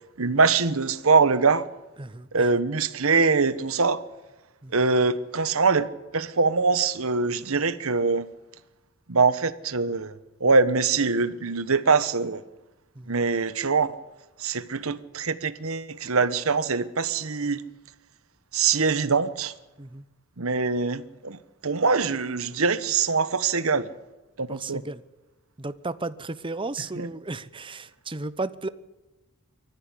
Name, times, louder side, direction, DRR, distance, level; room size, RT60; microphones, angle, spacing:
voice 1, 0.2-1.6 2.3-4.0 4.7-5.9 6.1-8.3 9.1-10.1 10.4-12.4 13.1-14.0 14.4-17.6 18.5-19.5 20.4-23.9 24.4-24.8 26.9-27.1, right 4 dB, 70° right, 1.2 m, -23 dB
voice 2, 2.0-2.5 4.6-4.7 13.0-13.2 19.8-20.0 24.5-25.0 25.6-28.7, right 3 dB, 25° right, 0.8 m, -34 dB
23.5 x 14.0 x 10.0 m
head